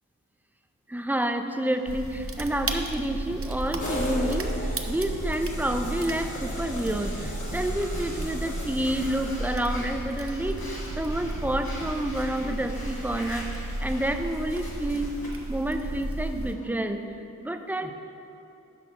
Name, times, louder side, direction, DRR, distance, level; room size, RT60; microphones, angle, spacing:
voice 1, 0.9-15.1 15.5-17.2 17.4-17.9, right 1 dB, 5° right, 6 dB, 0.5 m, -29 dB
Breathing, 1.6-16.6, left 1 dB, 85° left, 1.9 m, -46 dB
sound 1, 1.9-16.6, right 1 dB, 40° right, 0.7 m, -34 dB
sound 2, 3.8-9.8, left 1 dB, 55° left, 2.0 m, -37 dB
11.5 x 4.2 x 6.0 m, 2.8 s
wide cardioid pair, 60°, 35 cm